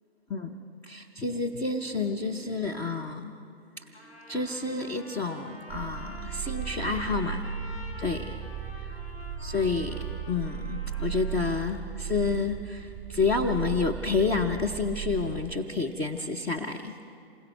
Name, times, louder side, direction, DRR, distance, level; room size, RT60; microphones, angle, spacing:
voice 1, 0.8-3.3 4.3-7.5 8.0-8.2 9.4-16.9, left 4 dB, 10° left, 2 dB, 0.5 m, -29 dB
Trumpet, 3.9-11.7, left 1 dB, 75° left, 6.4 m, -48 dB
sound 1, 5.7-15.6, right 8 dB, 15° right, 1.9 m, -36 dB
27.5 x 21.5 x 4.6 m, 2.4 s
figure-of-eight pair, 125°, 31 cm